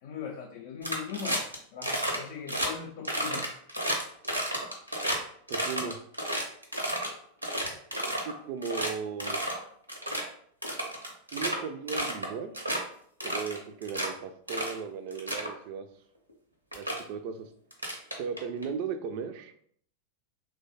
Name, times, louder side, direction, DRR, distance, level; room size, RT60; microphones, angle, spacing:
voice 1, 0.0-1.4 1.7-3.5 7.6-7.7, left 6 dB, 50° left, 0 dB, 0.4 m, -39 dB
sound 1, 0.8-1.6 1.8-2.2 2.5-2.7 3.0-5.2 5.5-7.1 7.4-8.3 8.6-8.9 9.2-9.6 9.9-10.2 10.6-11.6 11.9-12.3 12.5-12.8 13.2-14.1 14.5-14.8 15.1-15.5 16.3-16.4 16.7-17.0 17.7-18.6, right 1 dB, 85° right, 0.8 m, -31 dB
voice 2, 5.5-6.0 8.2-9.4 11.3-12.5 13.2-15.9 16.7-17.5 18.2-19.5, right 6 dB, 45° right, 8 dB, 0.4 m, -36 dB
3.0 x 2.2 x 4.0 m, 0.63 s
figure-of-eight pair, 90°, 0 cm